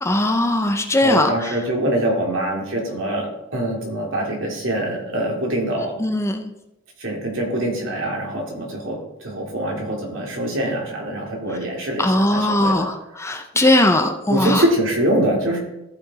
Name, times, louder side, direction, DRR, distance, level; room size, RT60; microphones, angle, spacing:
voice 1, 0.0-1.5 6.0-6.5 12.0-14.6, left 1 dB, 15° left, 6 dB, 0.6 m, -19 dB
voice 2, 1.0-6.1 7.0-12.9 14.3-15.6, right 1 dB, 70° right, -1 dB, 2.6 m, -24 dB
13.5 x 5.1 x 4.1 m, 0.89 s
head